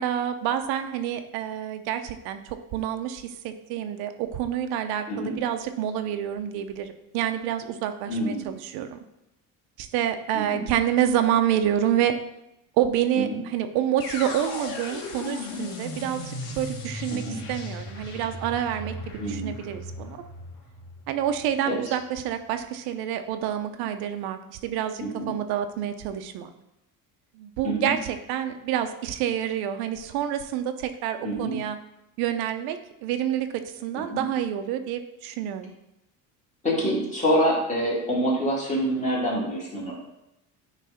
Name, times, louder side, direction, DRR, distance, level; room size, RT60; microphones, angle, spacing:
voice 1, 0.0-9.0 9.8-12.1 12.8-17.2 17.5-20.2 21.1-26.5 27.4-31.8 32.2-35.7, right 10 dB, 85° right, 7 dB, 0.8 m, -28 dB
voice 2, 8.1-8.5 10.3-10.6 13.3-13.4 17.1-17.4 19.2-19.6 21.6-21.9 25.0-25.3 27.6-27.9 31.2-31.5 33.9-34.2 36.6-40.0, equal, 20° left, -5 dB, 2.2 m, -26 dB
sound 1, 14.0-22.0, left 2 dB, 85° left, 1.6 m, -37 dB
9.4 x 3.3 x 5.0 m, 0.88 s
cardioid pair, 160°, 37 cm